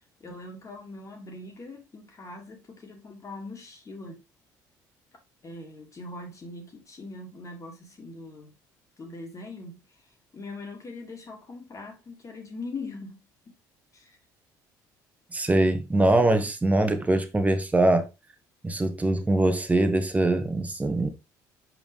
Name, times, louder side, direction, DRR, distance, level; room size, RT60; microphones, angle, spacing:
voice 1, 0.2-4.2 5.4-8.5 9.0-13.2 13.5-13.6 13.9-14.2, left 2 dB, 40° left, 2.6 m, -41 dB
voice 2, 15.3-18.1 18.6-21.1, right 2 dB, 15° right, 1.3 m, -23 dB
5.7 x 5.1 x 3.4 m
supercardioid pair, 70°, 9 cm